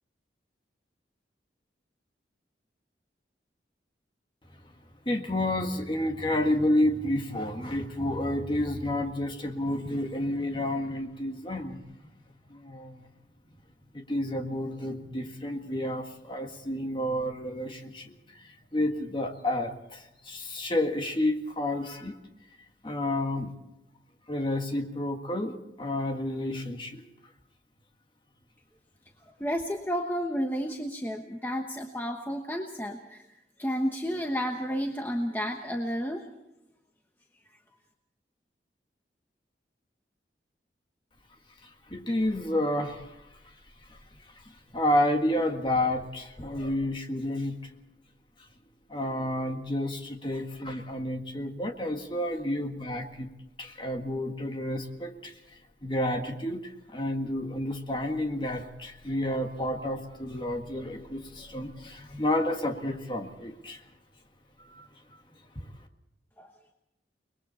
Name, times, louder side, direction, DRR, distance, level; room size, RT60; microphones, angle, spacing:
voice 1, 5.1-11.8 12.5-13.1 13.9-22.2 22.8-23.5 24.3-27.0 41.6-43.5 43.9-44.0 44.3-47.7 48.9-53.3 53.6-63.8 64.6-64.9 65.6-65.7, left 1 dB, 25° left, 4 dB, 1.8 m, -30 dB
voice 2, 29.4-33.3 33.6-36.3 66.4-66.5, equal, 10° left, 2 dB, 1.2 m, -31 dB
30.0 x 21.0 x 4.3 m, 0.90 s
head